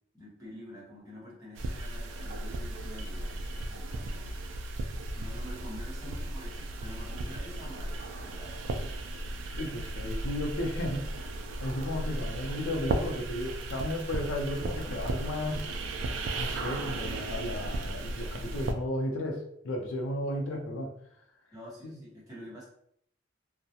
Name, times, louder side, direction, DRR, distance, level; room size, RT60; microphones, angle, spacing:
voice 1, 0.1-4.4 5.1-8.5 14.8-15.1 21.5-22.6, equal, 20° right, -7 dB, 1.0 m, -47 dB
sound 1, 1.5-18.7, right 2 dB, 70° right, 0.3 m, -35 dB
voice 2, 9.5-11.0 11.6-15.6 16.4-20.9 21.8-21.9, left 1 dB, 80° left, 1 dB, 0.5 m, -34 dB
2.3 x 2.1 x 2.8 m, 0.69 s
head